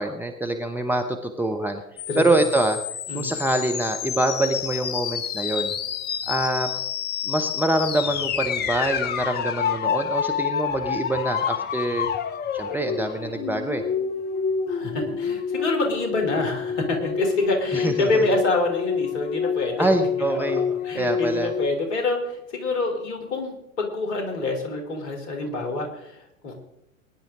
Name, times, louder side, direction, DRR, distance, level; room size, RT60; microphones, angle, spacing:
voice 1, 0.0-1.8 2.2-2.8 3.1-5.7 6.3-6.7 7.2-12.1 12.5-13.8 17.7-18.2 19.8-20.7 20.9-21.5, right 1 dB, 5° right, 3 dB, 0.9 m, -25 dB
sound 1, 2.0-21.7, left 7 dB, 25° left, 0.8 m, -28 dB
voice 2, 2.1-2.4 3.1-3.3 14.7-19.9 20.3-20.5 20.8-26.5, left 2 dB, 50° left, 4 dB, 3.7 m, -26 dB
21.0 x 10.5 x 3.8 m, 0.83 s
figure-of-eight pair, 90°, 42 cm